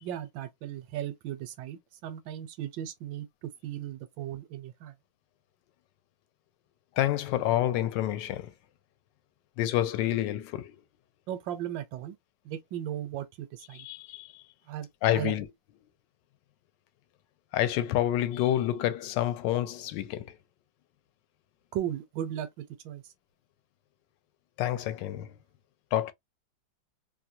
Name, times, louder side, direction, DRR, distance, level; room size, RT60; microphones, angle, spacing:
voice 1, 0.0-4.9 11.3-12.2 12.4-13.9 14.7-15.3 21.7-23.0, right 11 dB, 80° right, 1.4 m, -36 dB
voice 2, 7.0-8.5 9.6-10.8 13.7-14.4 15.0-15.5 17.5-20.3 24.6-25.3 25.9-26.1, left 13 dB, 75° left, 1.2 m, -28 dB
3.1 x 2.2 x 2.6 m
omnidirectional pair, 2.0 m